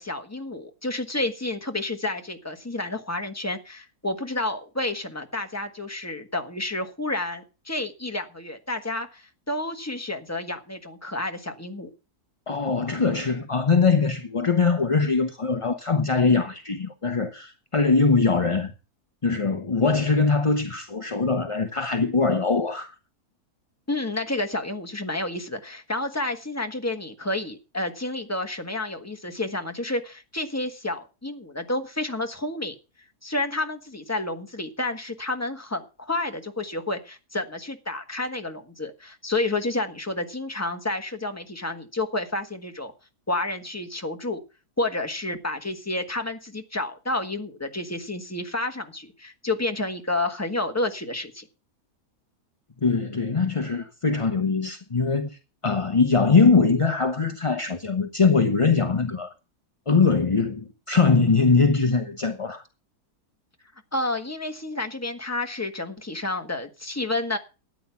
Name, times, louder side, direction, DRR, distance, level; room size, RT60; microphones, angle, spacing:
voice 1, 0.0-11.9 23.9-32.7 33.2-42.9 43.3-44.4 44.8-51.5 63.9-67.4, left 2 dB, 10° left, 1.4 m, -30 dB
voice 2, 12.5-18.7 19.2-22.9 52.8-59.3 59.9-62.6, left 4 dB, 25° left, 0.7 m, -22 dB
13.0 x 9.3 x 5.8 m
omnidirectional pair, 1.7 m